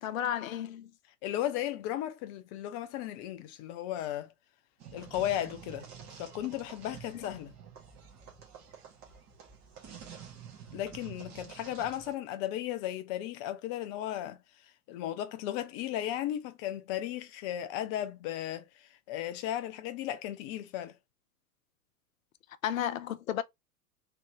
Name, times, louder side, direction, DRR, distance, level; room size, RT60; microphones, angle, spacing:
voice 1, 0.0-0.9 7.1-7.2 22.6-23.4, left 10 dB, 60° left, 0.7 m, -33 dB
voice 2, 1.2-4.3 4.9-5.9 6.2-7.5 10.7-14.4 14.9-21.0, left 12 dB, 20° left, 0.4 m, -35 dB
sound 1, 4.8-12.1, right 7 dB, 35° right, 1.8 m, -49 dB
3.8 x 3.2 x 3.0 m
figure-of-eight pair, 95°, 46 cm